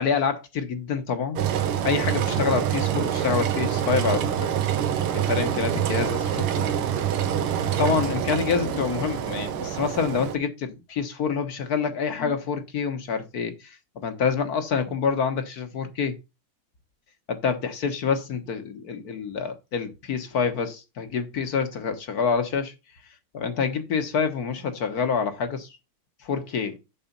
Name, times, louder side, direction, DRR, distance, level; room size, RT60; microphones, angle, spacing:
voice 1, 0.0-1.4 1.8-4.5 5.1-6.7 7.8-16.2 17.3-22.7 23.3-25.8 26.2-26.8, left 6 dB, 50° left, 1.5 m, -27 dB
Engine, 1.4-10.4, right 9 dB, 85° right, 1.9 m, -26 dB
7.1 x 4.9 x 5.2 m
omnidirectional pair, 2.4 m